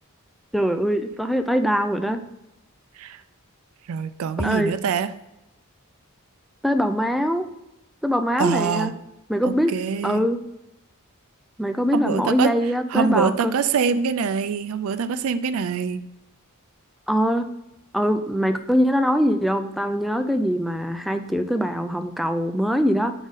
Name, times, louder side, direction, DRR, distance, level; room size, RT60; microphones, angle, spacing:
voice 1, 0.5-2.2 4.4-4.7 6.6-7.5 8.0-8.9 9.3-9.7 10.0-10.4 11.6-13.5 17.1-17.5 17.9-23.1, equal, ahead, 7 dB, 0.3 m, -22 dB
voice 2, 3.9-5.1 8.4-8.9 9.4-10.2 11.9-12.5 12.9-16.1, right 6 dB, 75° right, 12 dB, 0.4 m, -24 dB
4.9 x 4.0 x 5.4 m, 0.89 s
head